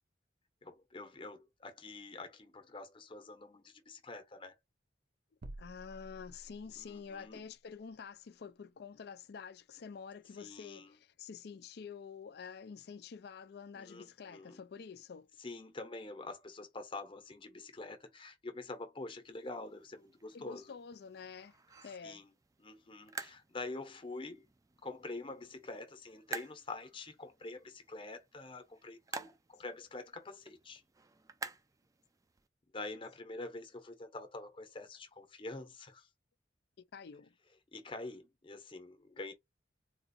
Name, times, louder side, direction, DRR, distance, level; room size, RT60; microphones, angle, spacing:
voice 1, 0.6-4.6 6.8-7.4 10.4-11.0 13.7-14.6 15.4-20.7 22.0-22.3 22.6-24.5 24.8-30.8 32.7-36.1 37.7-39.3, left 2 dB, 30° left, 0.8 m, -46 dB
sound 1, 5.4-7.0, right 1 dB, 60° right, 0.6 m, -50 dB
voice 2, 5.6-15.3 20.3-21.6 21.8-22.2 36.8-37.3, left 6 dB, 60° left, 0.4 m, -48 dB
sound 2, 19.2-32.5, right 4 dB, 20° right, 0.3 m, -51 dB
3.8 x 2.5 x 2.5 m
head